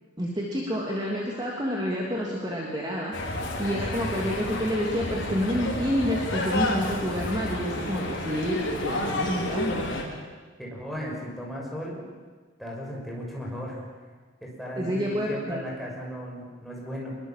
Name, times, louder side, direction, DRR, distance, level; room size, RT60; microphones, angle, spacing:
voice 1, 0.2-3.2 3.6-9.8 14.7-15.6, equal, 20° right, -3 dB, 3.1 m, -28 dB
sound 1, 3.1-10.0, left 1 dB, 65° left, 5.1 m, -30 dB
voice 2, 3.7-4.0 10.6-12.1 12.6-13.8 14.4-17.2, equal, ahead, -3 dB, 6.1 m, -36 dB
25.0 x 22.5 x 7.6 m, 1.5 s
head